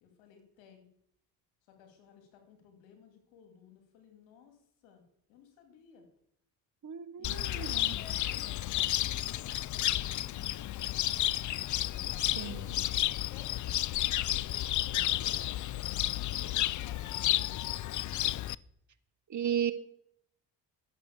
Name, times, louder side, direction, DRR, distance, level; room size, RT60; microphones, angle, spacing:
voice 1, 0.0-0.9 1.7-5.0 5.3-6.1 7.2-11.4 12.1-12.8 13.3-15.9 16.2-18.1, left 7 dB, 90° left, 5 dB, 2.6 m, -56 dB
voice 2, 6.8-7.9 12.4-12.7 19.3-19.7, right 9 dB, 40° right, 12 dB, 1.2 m, -34 dB
Cricket, 7.2-18.5, left 14 dB, 45° left, 0.4 m, -32 dB
11.0 x 7.7 x 7.2 m, 0.71 s
supercardioid pair, 60°, 44 cm